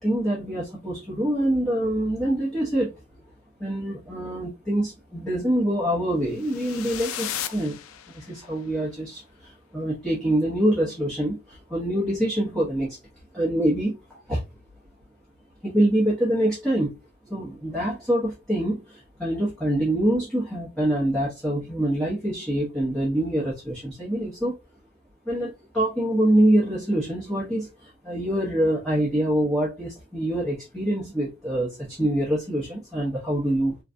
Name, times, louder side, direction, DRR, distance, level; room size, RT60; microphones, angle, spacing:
voice 1, 0.0-2.9 3.6-7.8 8.1-13.0 13.3-14.4 15.6-16.9 17.3-24.6 25.3-33.8, right 1 dB, 5° left, 0.9 m, -25 dB
sound 1, 6.4-8.5, left 10 dB, 85° left, 0.4 m, -35 dB
3.3 x 2.3 x 2.5 m
head